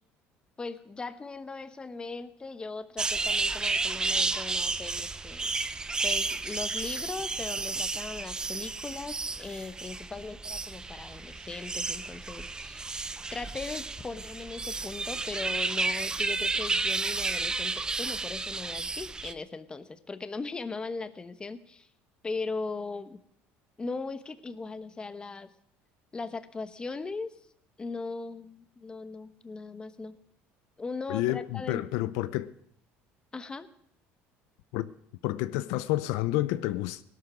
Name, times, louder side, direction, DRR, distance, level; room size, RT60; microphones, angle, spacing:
voice 1, 0.6-5.5 6.0-17.7 18.0-21.9 22.2-23.2 23.8-25.5 26.1-27.3 27.8-30.1 30.8-32.1 33.3-33.7, left 3 dB, 20° left, 1.1 m, -39 dB
sound 1, 3.0-19.3, right 3 dB, 15° right, 0.7 m, -32 dB
voice 2, 31.1-32.5 34.7-34.9 35.2-37.0, left 16 dB, 85° left, 0.7 m, -29 dB
17.5 x 12.0 x 6.2 m
cardioid pair, 125°, 5 cm